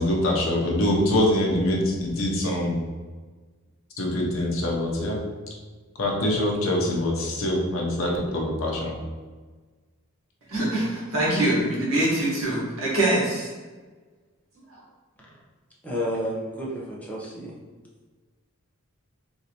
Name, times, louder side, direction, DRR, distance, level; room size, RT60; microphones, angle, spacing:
voice 1, 0.0-2.9 4.0-5.2 6.0-9.0, left 1 dB, 65° left, -2 dB, 0.7 m, -24 dB
voice 2, 10.5-13.5 14.7-14.8, right 1 dB, 75° right, -6 dB, 1.2 m, -24 dB
voice 3, 15.8-17.5, equal, 5° left, -5 dB, 0.6 m, -31 dB
3.2 x 2.6 x 2.8 m, 1.4 s
head